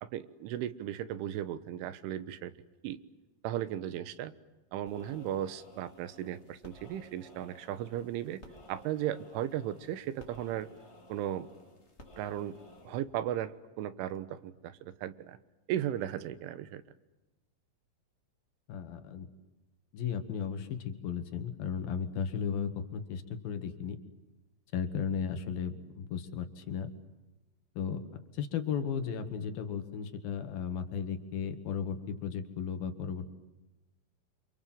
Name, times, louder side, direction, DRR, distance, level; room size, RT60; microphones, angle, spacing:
voice 1, 0.0-2.5 2.8-3.0 3.4-4.3 4.7-8.4 8.7-10.7 11.1-11.5 12.2-12.6 12.9-15.4 15.7-16.8, right 11 dB, 80° right, 14 dB, 3.6 m, -36 dB
sound 1, 4.8-13.2, left 1 dB, 15° left, 2.8 m, -55 dB
voice 2, 18.7-19.3 19.9-24.0 24.7-26.9 27.8-28.0 28.3-33.3, left 7 dB, 60° left, 8 dB, 3.2 m, -35 dB
29.0 x 27.0 x 7.7 m, 1.1 s
omnidirectional pair, 5.6 m